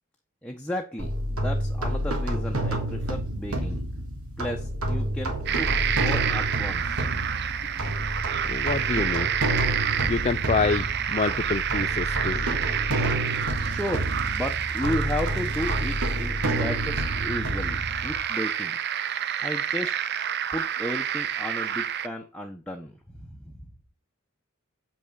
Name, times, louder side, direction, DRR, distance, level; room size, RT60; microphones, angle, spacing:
voice 1, 0.4-3.8 4.4-7.0 12.1-12.2 13.6-18.8 19.4-19.9 20.5-23.6, left 1 dB, 5° left, 1.1 m, -34 dB
sound 1, 1.0-18.2, right 1 dB, 75° right, 3.0 m, -29 dB
sound 2, 5.5-22.1, right 9 dB, 50° right, 0.6 m, -29 dB
voice 2, 8.5-9.3 10.1-12.5, left 4 dB, 30° left, 0.4 m, -27 dB
8.6 x 6.2 x 6.9 m
head